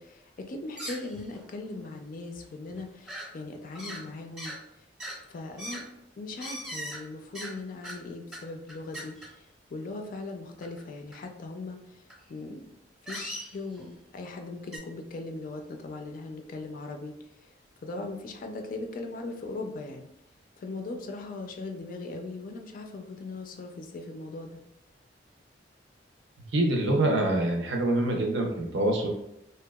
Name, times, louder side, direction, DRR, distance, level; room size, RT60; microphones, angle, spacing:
voice 1, 0.0-4.6 5.3-5.8 6.2-12.6 13.0-17.1 17.4-17.5 17.8-20.1 20.6-24.6, left 3 dB, 50° left, 4 dB, 0.3 m, -39 dB
sound 1, 0.7-1.5 1.7-1.8 2.3-2.4 2.7-3.3 3.7-4.0 4.4-4.6 5.0-5.2 5.6-5.8 6.4-7.0 7.3-7.5 7.8-8.0 8.3-8.4 8.7-9.3 10.6-10.8 11.1-11.2 12.1-12.2 13.1-13.8 14.7-14.8, equal, 5° right, 0.7 m, -39 dB
voice 2, 26.5-29.1, right 1 dB, 70° right, 1 dB, 0.6 m, -25 dB
2.7 x 2.2 x 2.2 m, 0.79 s
head